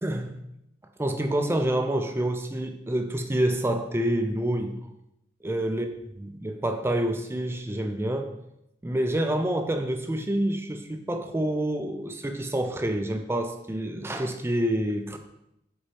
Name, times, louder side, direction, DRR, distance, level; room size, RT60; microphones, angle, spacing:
voice 1, 0.0-0.4 1.0-4.8 5.4-5.9 6.2-8.3 8.8-15.2, right 1 dB, 15° right, 6 dB, 0.4 m, -27 dB
6.5 x 4.5 x 3.2 m, 0.83 s
head